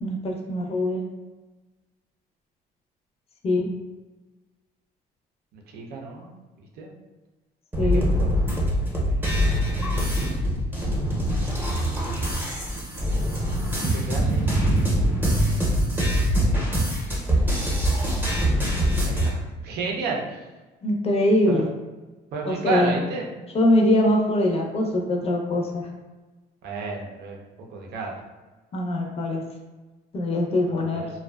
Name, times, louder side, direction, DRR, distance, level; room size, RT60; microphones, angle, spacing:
voice 1, 0.0-1.0 3.4-3.7 7.8-8.1 20.8-21.7 22.5-22.9 23.5-25.9 28.7-29.4 30.1-31.1, left 1 dB, 35° left, 1 dB, 0.5 m, -22 dB
voice 2, 5.5-6.3 6.6-6.9 7.9-8.3 9.0-9.5 13.8-14.6 17.1-17.2 19.0-20.4 21.5-21.6 22.3-23.3 26.6-28.2 30.9-31.1, right 4 dB, 70° right, 0 dB, 0.6 m, -32 dB
sound 1, 7.7-19.3, equal, 10° right, 0.7 m, -23 dB
2.5 x 2.2 x 2.2 m, 1.2 s
cardioid pair, 110°, 17 cm